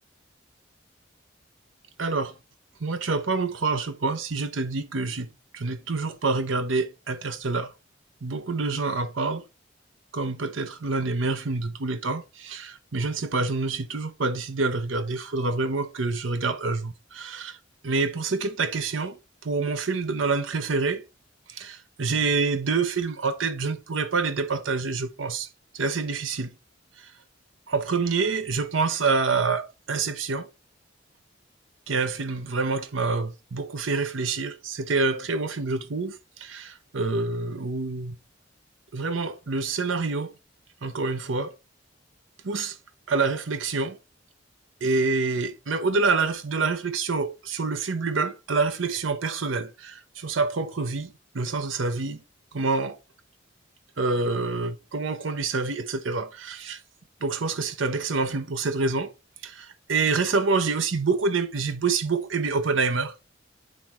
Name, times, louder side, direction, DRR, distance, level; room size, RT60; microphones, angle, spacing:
voice 1, 2.0-2.4 2.8-5.3 5.5-7.7 8.2-9.4 10.1-17.6 17.8-19.2 19.4-21.0 21.5-26.5 27.0-27.1 27.7-30.5 31.9-38.2 38.9-40.3 40.8-41.6 42.4-42.8 43.1-44.0 44.8-52.2 52.5-53.0 54.0-56.8 57.2-59.1 59.4-63.1, right 4 dB, 80° right, 0.8 m, -27 dB
9.8 x 3.6 x 4.3 m
head